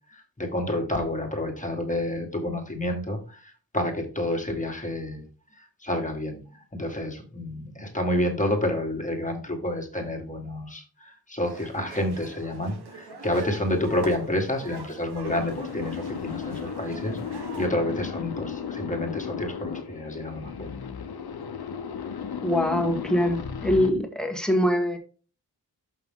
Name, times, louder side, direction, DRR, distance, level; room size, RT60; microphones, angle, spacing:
voice 1, 0.1-5.3 5.6-6.4 6.7-20.7, left 1 dB, 20° left, 2 dB, 1.9 m, -29 dB
sound 1, 11.4-17.7, right 3 dB, 85° right, 1.4 m, -43 dB
sound 2, 15.2-23.9, left 6 dB, 75° left, 0.9 m, -35 dB
voice 2, 22.4-25.0, left 1 dB, ahead, 3 dB, 1.6 m, -23 dB
6.6 x 5.8 x 3.7 m, 0.36 s
wide cardioid pair, 110°, 38 cm